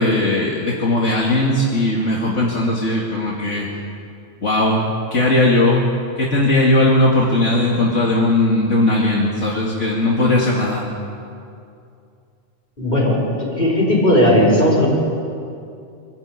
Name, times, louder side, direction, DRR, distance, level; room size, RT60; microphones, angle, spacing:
voice 1, 0.0-3.7 4.4-4.8 5.1-5.8 6.2-10.8, left 2 dB, 75° left, -3 dB, 2.5 m, -18 dB
voice 2, 12.8-13.2 13.6-14.9, left 1 dB, 40° left, -3 dB, 6.0 m, -15 dB
25.5 x 14.0 x 8.5 m, 2.5 s
omnidirectional pair, 1.2 m